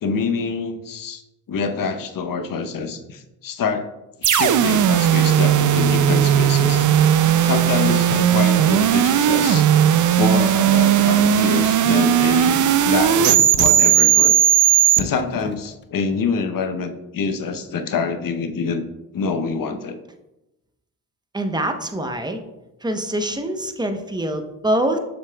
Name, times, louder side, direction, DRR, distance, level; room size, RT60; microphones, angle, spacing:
voice 1, 0.0-1.2 1.5-3.9 4.2-6.8 7.4-9.7 10.2-14.4 14.9-18.8 19.1-20.0, left 5 dB, 50° left, 8 dB, 0.9 m, -26 dB
sound 1, 4.2-15.0, right 10 dB, 45° right, 0.5 m, -16 dB
Thump thud, 6.3-6.4 7.8-8.9 9.3-10.3 10.7-12.1 12.7-12.9 13.2-13.6 15.0-16.1, left 5 dB, 25° left, 0.5 m, -34 dB
voice 2, 21.3-22.4 22.8-25.0, right 1 dB, 10° right, 6 dB, 0.9 m, -24 dB
6.7 x 6.7 x 2.3 m, 0.96 s
supercardioid pair, 60°, 43 cm